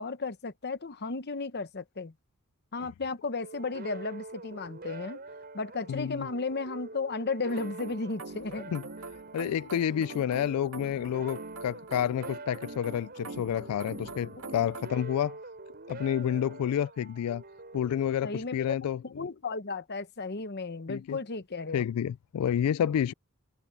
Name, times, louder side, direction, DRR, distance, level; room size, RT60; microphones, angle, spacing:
voice 1, 0.0-2.1 2.7-5.2 5.5-8.7 18.2-18.8 19.0-21.8, left 3 dB, 45° left, 0.9 m, -34 dB
sound 1, 3.4-18.8, right 3 dB, 45° right, 5.6 m, -46 dB
voice 2, 5.9-6.3 8.7-8.8 9.3-15.4 15.9-17.4 17.7-19.0 20.9-21.2 21.7-23.1, left 9 dB, 85° left, 0.3 m, -29 dB
sound 2, 7.5-14.9, right 3 dB, 65° right, 2.0 m, -44 dB
head